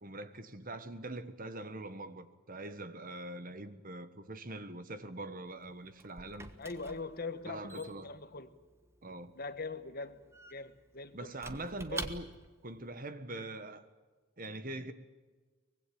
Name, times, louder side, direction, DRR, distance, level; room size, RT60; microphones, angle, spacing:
voice 1, 0.0-6.5 7.4-8.1 9.0-9.3 11.1-12.3 12.6-13.8 14.4-14.9, right 2 dB, 40° right, 1.4 m, -43 dB
Squeak / Wood, 5.5-12.6, right 2 dB, 10° right, 1.3 m, -48 dB
voice 2, 6.6-8.5 9.3-10.2 10.5-11.4 11.9-12.0 13.3-13.4, left 3 dB, 45° left, 1.3 m, -42 dB
24.0 x 21.0 x 8.7 m
head